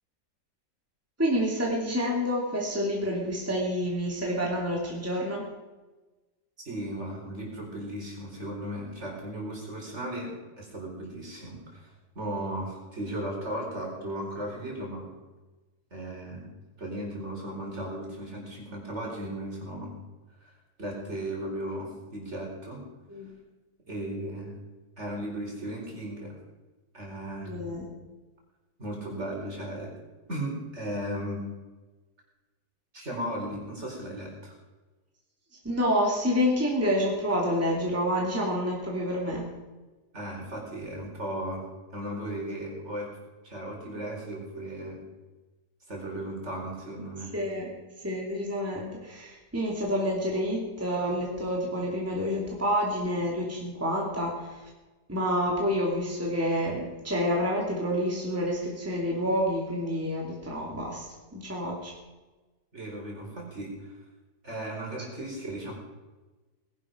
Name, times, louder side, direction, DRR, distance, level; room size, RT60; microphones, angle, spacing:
voice 1, 1.2-5.4 23.1-23.3 27.5-27.9 35.6-39.5 46.1-46.2 47.3-47.7 48.0-54.7 55.1-61.9, equal, 10° right, -3 dB, 2.6 m, -28 dB
voice 2, 6.6-15.1 15.9-16.5 16.8-20.0 20.4-22.8 23.9-24.5 25.0-26.4 26.9-27.6 28.8-29.9 30.3-31.4 32.9-34.5 40.1-41.6 41.9-43.1 43.4-45.0 45.9-47.3 62.7-64.0 64.4-65.7, right 1 dB, 40° right, -1 dB, 4.5 m, -36 dB
19.5 x 11.0 x 5.1 m, 1.2 s
omnidirectional pair, 1.7 m